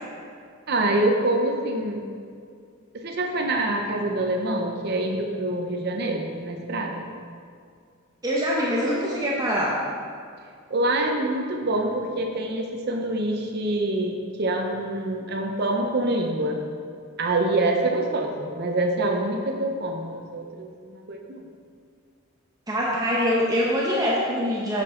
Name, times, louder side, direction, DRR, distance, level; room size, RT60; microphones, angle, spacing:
voice 1, 0.7-2.1 2.9-7.1 10.7-16.6 17.2-21.4, right 2 dB, 50° right, 2 dB, 0.7 m, -26 dB
voice 2, 8.2-9.8 22.7-24.8, equal, 20° right, -5 dB, 0.7 m, -24 dB
8.0 x 6.1 x 3.7 m, 2.2 s
head